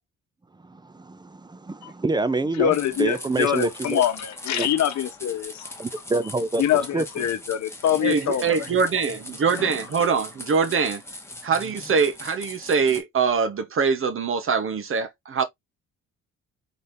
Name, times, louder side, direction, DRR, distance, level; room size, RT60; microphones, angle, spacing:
voice 1, 0.6-4.0 4.5-4.7 5.8-6.6 6.9-7.3, right 3 dB, 15° right, 0.5 m, -27 dB
voice 2, 2.5-5.7 6.6-8.7, left 10 dB, 65° left, 1.0 m, -24 dB
sound 1, 2.7-13.0, left 1 dB, 10° left, 1.3 m, -40 dB
voice 3, 8.0-11.0 11.4-15.4, right 5 dB, 45° right, 1.0 m, -23 dB
4.1 x 3.4 x 2.6 m
cardioid pair, 90°, 30 cm